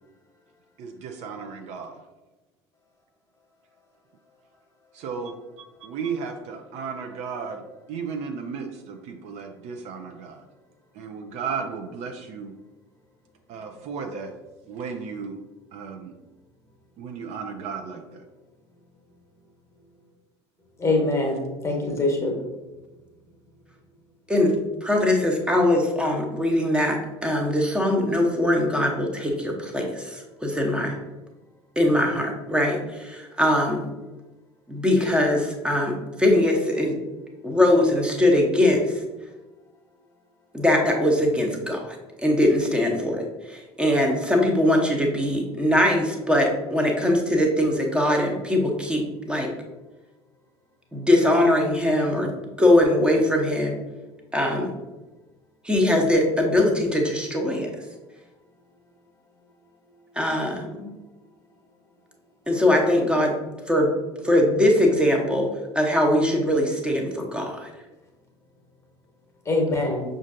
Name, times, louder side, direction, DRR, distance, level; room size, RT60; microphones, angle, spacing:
voice 1, 0.8-1.9 4.9-5.3 5.8-7.6 7.9-10.4 11.0-12.5 13.5-14.3 14.7-15.3 15.7-16.1 17.0-18.3, right 5 dB, 50° right, 4 dB, 0.5 m, -34 dB
voice 2, 20.8-22.4 69.4-70.0, left 2 dB, 20° left, 1 dB, 1.1 m, -23 dB
voice 3, 24.8-31.0 31.8-33.8 34.7-37.0 37.4-38.9 40.5-49.5 50.9-52.3 52.6-53.8 54.3-54.7 55.6-57.7 60.2-60.9 62.5-63.3 63.7-63.9 64.2-65.5 65.7-67.7, left 1 dB, 5° right, 1 dB, 0.8 m, -21 dB
6.1 x 2.5 x 2.5 m, 1.1 s
figure-of-eight pair, 65°, 15 cm